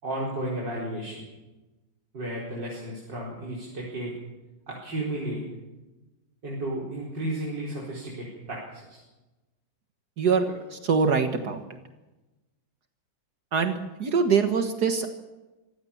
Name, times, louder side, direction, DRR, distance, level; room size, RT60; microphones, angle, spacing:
voice 1, 0.0-1.2 2.1-4.1 4.7-5.4 6.4-9.0, right 1 dB, 90° right, -5 dB, 5.5 m, -33 dB
voice 2, 10.2-11.6 13.5-15.1, right 5 dB, 65° right, 7 dB, 2.0 m, -24 dB
26.0 x 16.0 x 7.3 m, 1.1 s
omnidirectional pair, 1.9 m